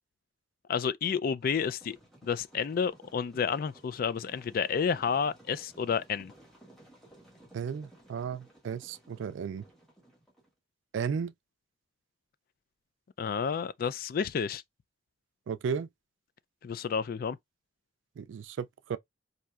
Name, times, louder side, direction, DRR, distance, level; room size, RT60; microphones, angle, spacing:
voice 1, 0.7-2.0 2.2-6.3 13.2-14.6 16.6-17.4, left 6 dB, 50° left, 0.3 m, -30 dB
sound 1, 1.4-10.5, right 1 dB, ahead, 1.6 m, -57 dB
voice 2, 7.5-9.6 10.9-11.3 15.5-15.9 18.2-19.0, right 6 dB, 80° right, 0.3 m, -34 dB
4.3 x 2.7 x 2.3 m
head